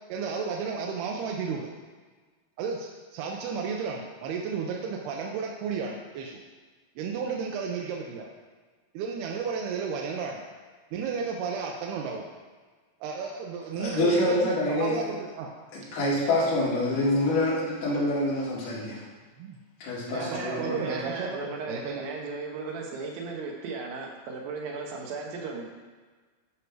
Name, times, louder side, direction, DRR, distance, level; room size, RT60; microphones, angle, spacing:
voice 1, 0.1-1.7 2.6-6.4 7.0-8.3 9.0-10.4 10.9-12.2 13.0-15.5 19.4-19.6 20.2-22.0, right 5 dB, 90° right, 0 dB, 2.7 m, -33 dB
voice 2, 13.8-15.0 15.7-19.0 19.8-21.0, left 1 dB, 55° left, -8 dB, 4.0 m, -26 dB
voice 3, 20.1-25.6, right 4 dB, 75° right, 0 dB, 2.9 m, -36 dB
11.0 x 5.2 x 4.6 m, 1.4 s
omnidirectional pair, 4.5 m